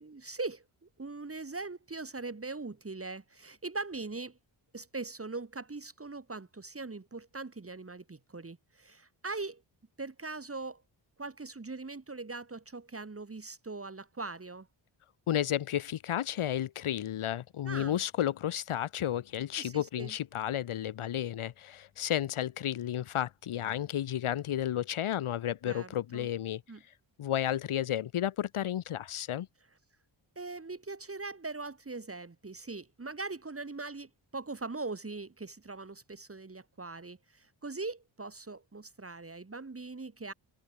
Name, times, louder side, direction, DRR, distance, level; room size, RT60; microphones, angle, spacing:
voice 1, 0.0-4.4 4.7-9.6 10.0-10.8 11.2-14.7 17.6-18.0 19.6-20.1 25.6-26.3 26.7-26.8 30.4-40.3, right 3 dB, 25° right, 3.9 m, -41 dB
voice 2, 15.3-26.6 27.2-29.5, left 11 dB, 85° left, 2.1 m, -32 dB
cardioid pair, 80°, 48 cm